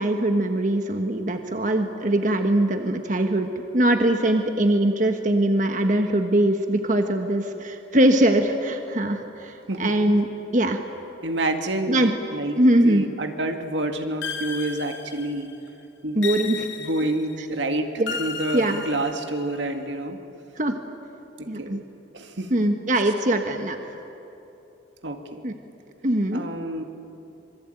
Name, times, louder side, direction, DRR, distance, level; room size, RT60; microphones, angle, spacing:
voice 1, 0.0-9.5 9.8-10.3 10.5-10.8 11.9-12.1 12.6-13.0 16.1-16.7 18.0-18.2 18.5-18.8 20.6-20.7 21.5-21.8 22.5-23.8 25.4-25.5 26.0-26.4, right 1 dB, 40° right, 5 dB, 1.4 m, -21 dB
voice 2, 11.2-12.0 12.3-15.5 16.0-16.2 16.8-17.9 18.2-20.2 21.4-21.8 22.1-22.6 25.0-25.5 26.3-26.8, right 1 dB, 75° right, 5 dB, 2.1 m, -28 dB
sound 1, 14.2-15.6 16.2-17.4 18.1-19.6, left 5 dB, 80° left, 2.2 m, -34 dB
26.5 x 24.0 x 9.1 m, 3.0 s
head